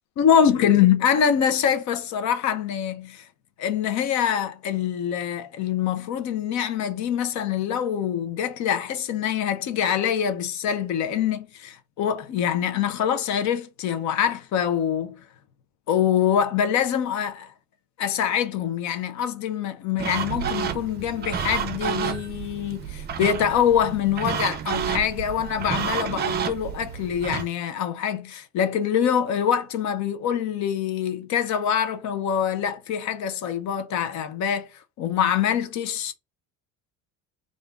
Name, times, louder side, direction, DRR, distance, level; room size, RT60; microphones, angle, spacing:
voice 1, 0.2-3.2 3.6-15.2 15.9-17.5 18.0-34.7 35.0-36.1, left 9 dB, 55° left, 0.8 m, -24 dB
sound 1, 20.0-27.5, right 7 dB, 30° right, 0.5 m, -30 dB
3.6 x 2.5 x 3.7 m
cardioid pair, 160°, 33 cm